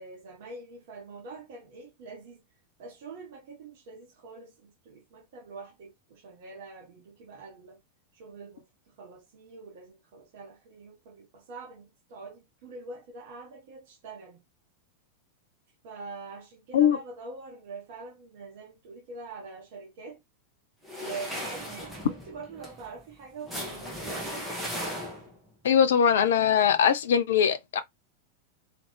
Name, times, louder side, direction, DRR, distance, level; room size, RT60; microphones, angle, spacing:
voice 1, 0.0-2.4 2.8-7.8 8.1-14.4 15.8-20.2 20.9-24.4, right 3 dB, 50° right, 1.4 m, -44 dB
sound 1, 20.8-25.5, equal, ahead, 1.7 m, -37 dB
voice 2, 25.6-27.8, left 8 dB, 60° left, 0.6 m, -21 dB
3.8 x 3.2 x 3.2 m
figure-of-eight pair, 90°, 0 cm